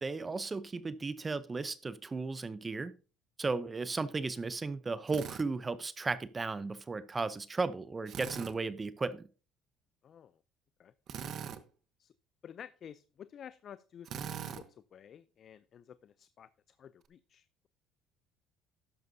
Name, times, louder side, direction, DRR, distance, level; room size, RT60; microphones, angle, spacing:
voice 1, 0.0-2.9 3.4-9.3, right 3 dB, 25° right, 0.6 m, -35 dB
Drill, 5.1-5.5 8.1-8.5 11.1-11.6 14.1-14.6, right 8 dB, 55° right, 1.0 m, -41 dB
voice 2, 12.4-14.6 14.9-16.5 16.8-17.7, left 8 dB, 50° left, 0.4 m, -52 dB
12.5 x 10.5 x 2.7 m
supercardioid pair, 95°, 0 cm